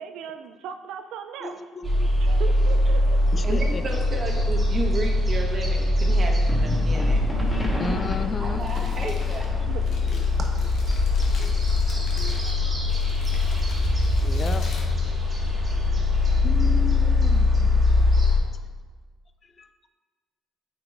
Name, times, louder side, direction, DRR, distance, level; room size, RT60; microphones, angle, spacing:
voice 1, 0.0-1.6 2.2-3.2 9.6-9.9, right 7 dB, 80° right, 7 dB, 0.3 m, -37 dB
voice 2, 1.4-2.1 2.7-2.8 3.3-4.2 7.8-8.7 10.0-10.4 11.4-12.9 14.2-14.7 16.4-18.2 19.4-19.7, left 4 dB, 40° left, 9 dB, 0.4 m, -36 dB
sound 1, 1.8-18.4, left 2 dB, 25° right, 1.7 m, -22 dB
voice 3, 3.4-8.0 8.4-9.5 10.4-10.5, right 2 dB, 40° right, 1 dB, 1.1 m, -33 dB
sound 2, 6.5-10.0, left 1 dB, 10° left, 1.3 m, -30 dB
Crumpling crinkling, 8.4-15.7, left 2 dB, 65° left, 1.2 m, -46 dB
8.6 x 4.7 x 2.5 m, 1.4 s
cardioid pair, 85°, 0 cm